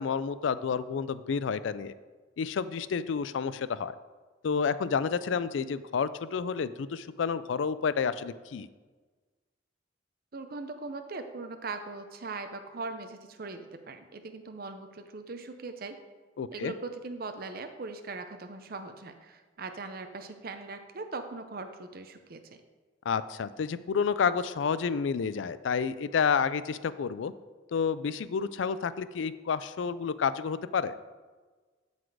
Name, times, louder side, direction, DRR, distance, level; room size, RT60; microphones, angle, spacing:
voice 1, 0.0-1.9 2.4-4.0 4.4-8.7 16.4-16.7 23.1-27.3 27.7-30.9, left 6 dB, 80° left, 15 dB, 0.4 m, -30 dB
voice 2, 10.3-16.0 16.5-22.6, right 3 dB, 50° right, 7 dB, 0.7 m, -40 dB
12.5 x 4.1 x 4.8 m, 1.4 s
head